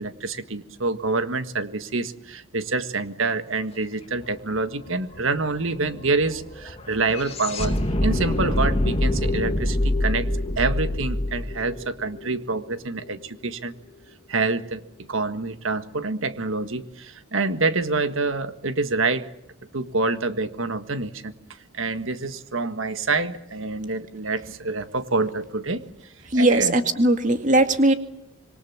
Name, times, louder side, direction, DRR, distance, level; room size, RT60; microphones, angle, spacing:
voice 1, 0.0-7.7 8.0-10.3 10.6-13.7 14.3-14.8 15.1-19.3 19.7-21.3 21.7-25.8 26.3-26.8, right 3 dB, 70° right, 10 dB, 1.6 m, -26 dB
sound 1, 4.2-4.3 4.5-12.8, left 1 dB, 30° left, 2.7 m, -26 dB
voice 2, 26.3-27.9, right 1 dB, 35° right, 7 dB, 2.2 m, -19 dB
26.5 x 23.0 x 7.4 m, 0.84 s
head